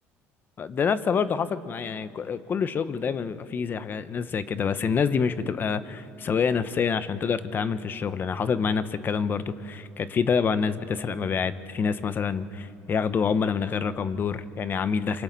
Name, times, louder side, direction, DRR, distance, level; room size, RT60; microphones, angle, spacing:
voice 1, 0.6-15.2, left 6 dB, 35° left, 13 dB, 0.8 m, -27 dB
27.0 x 24.5 x 4.1 m, 2.5 s
cardioid pair, 110°, 6 cm